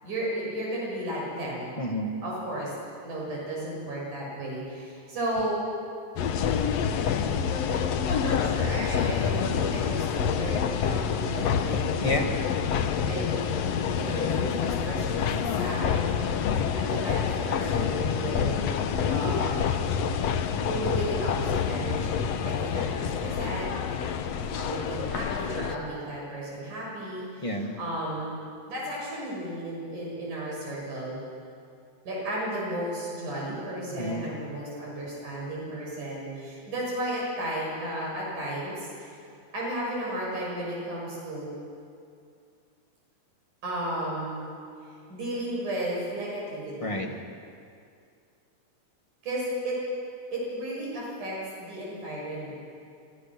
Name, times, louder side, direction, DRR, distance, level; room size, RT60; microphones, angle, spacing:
voice 1, 0.0-1.7 2.2-2.7 3.0-5.6 8.1-12.0 13.0-13.2 14.0-15.3 15.6-16.1 16.4-18.7 19.1-19.6 20.7-23.7 24.5-28.3 28.7-31.2 32.0-39.2 39.5-41.5 43.6-44.4 45.1-47.1 49.2-49.8 50.3-52.5, right 1 dB, 80° right, -4 dB, 8.2 m, -34 dB
voice 2, 1.8-2.1 12.0-12.3 27.4-27.8 33.9-34.3 46.8-47.1, left 1 dB, 15° left, 3 dB, 1.5 m, -29 dB
sound 1, 6.2-25.8, left 7 dB, 65° left, 2.0 m, -27 dB
29.0 x 25.5 x 6.3 m, 2.4 s
omnidirectional pair, 3.5 m